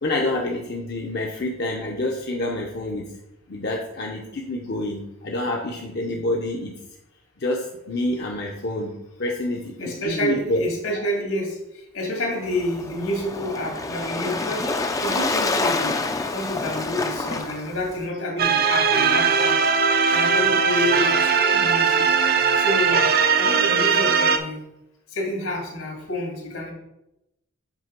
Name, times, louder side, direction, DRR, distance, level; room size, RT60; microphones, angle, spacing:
voice 1, 0.0-3.0 3.5-6.7 7.4-8.9 9.2-10.6 11.0-11.1, left 1 dB, 50° left, 0 dB, 0.7 m, -27 dB
voice 2, 9.8-11.5 11.9-14.6 15.0-16.0 16.3-19.6 20.1-22.1 22.6-23.1 23.4-24.6 25.1-26.7, left 1 dB, 75° left, -1 dB, 2.0 m, -28 dB
Waves surf, 12.4-18.1, left 3 dB, 15° left, 0.4 m, -27 dB
sound 1, 18.4-24.4, right 6 dB, 45° right, 0.5 m, -19 dB
7.4 x 3.3 x 5.1 m, 0.90 s
head